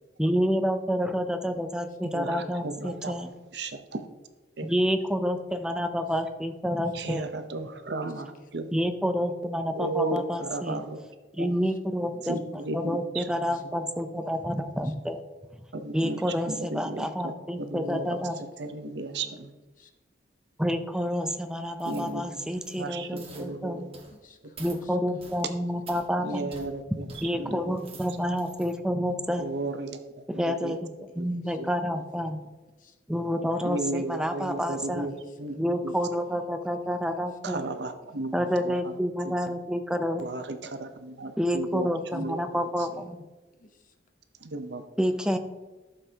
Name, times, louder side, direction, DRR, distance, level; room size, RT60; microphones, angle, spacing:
voice 1, 0.2-3.3 4.6-7.3 8.7-10.8 11.3-15.2 15.9-18.4 20.6-23.9 24.6-26.5 27.0-29.5 30.3-32.4 33.1-35.1 35.6-37.6 38.3-40.3 41.4-43.2 45.0-45.4, equal, 5° right, 8 dB, 0.6 m, -29 dB
voice 2, 2.0-3.1 3.5-4.0 4.6-4.7 6.9-8.7 9.7-11.0 11.4-11.5 12.3-13.2 15.7-17.3 17.6-18.2 18.6-19.5 21.8-22.2 22.8-23.9 26.2-27.1 27.4-27.7 29.4-30.0 30.3-30.8 31.2-31.3 31.6-31.7 33.6-35.1 35.4-35.5 35.8-36.0 37.4-38.9 39.2-39.3 40.2-42.4 44.4-44.8, right 2 dB, 65° right, 8 dB, 0.8 m, -34 dB
sound 1, 21.8-22.1 22.5-22.8 23.2-23.5 23.9-24.2 24.6-24.8 25.2-25.4 25.9-26.0 26.5-26.7 27.1-27.2 27.7-28.7 29.2-29.3, right 4 dB, 35° right, 1.3 m, -48 dB
voice 3, 23.7-25.0 25.3-25.4 25.9-26.0 26.3-26.4 31.3-31.6 32.2-32.3 32.8-32.9 35.1-35.4 35.7-35.9 36.3-36.4 38.1-38.2 42.9-43.1 43.6-43.9, left 2 dB, 45° left, 5 dB, 0.9 m, -55 dB
12.5 x 6.9 x 2.9 m, 1.2 s
head